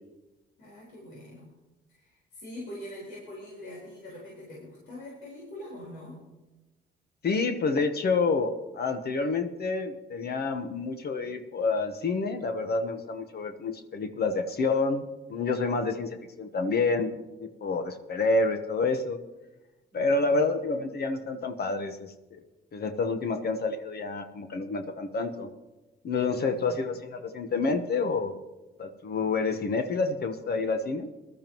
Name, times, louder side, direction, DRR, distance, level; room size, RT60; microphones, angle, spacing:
voice 1, 0.6-1.5 1.9-6.2 19.9-20.4 26.3-26.8, left 1 dB, 85° left, -5 dB, 4.6 m, -44 dB
voice 2, 7.2-17.1 17.4-19.2 19.9-22.4 22.7-25.5 26.0-28.3 28.8-31.1, left 3 dB, 55° left, 7 dB, 1.2 m, -28 dB
20.0 x 12.5 x 3.1 m, 1.1 s
cardioid pair, 90°, 20 cm